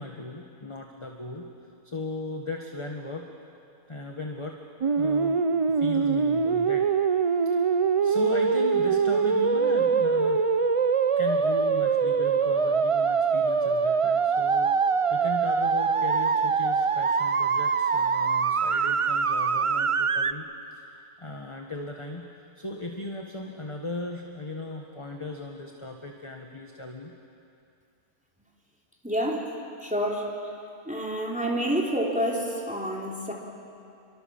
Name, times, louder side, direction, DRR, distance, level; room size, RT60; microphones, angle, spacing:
voice 1, 0.0-1.5 1.8-3.3 3.9-5.4 5.8-6.9 7.4-7.6 8.0-10.4 11.2-20.4 20.7-22.3 22.5-27.1, left 2 dB, 20° left, 2 dB, 1.5 m, -37 dB
sound 1, 4.8-20.3, right 5 dB, 60° right, 0.3 m, -23 dB
voice 2, 29.0-29.5 29.8-30.3 30.9-33.3, equal, 5° right, -2 dB, 3.6 m, -28 dB
29.5 x 24.0 x 7.3 m, 2.6 s
omnidirectional pair, 1.5 m